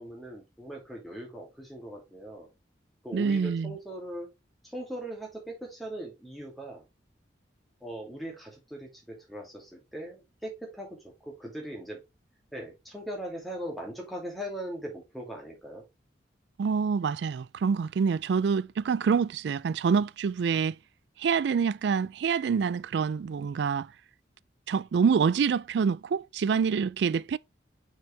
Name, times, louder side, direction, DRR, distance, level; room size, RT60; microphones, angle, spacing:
voice 1, 0.0-2.5 3.0-4.3 4.6-6.8 7.8-12.0 12.5-15.8, right 1 dB, ahead, 2.5 m, -40 dB
voice 2, 3.1-3.7 16.6-20.8 21.2-23.9 24.7-27.4, right 6 dB, 65° right, 0.3 m, -26 dB
6.4 x 4.7 x 3.2 m
head